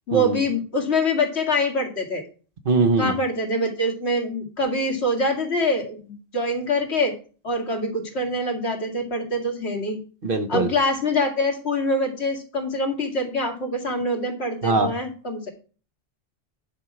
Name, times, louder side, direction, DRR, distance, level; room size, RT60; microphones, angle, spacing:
voice 1, 0.1-2.2 3.0-7.1 7.4-10.0 10.5-15.5, left 1 dB, 75° left, 1 dB, 2.3 m, -24 dB
voice 2, 2.6-3.1 10.2-10.7 14.6-14.9, right 3 dB, 55° right, 7 dB, 1.2 m, -21 dB
10.5 x 4.6 x 6.0 m, 0.39 s
omnidirectional pair, 1.1 m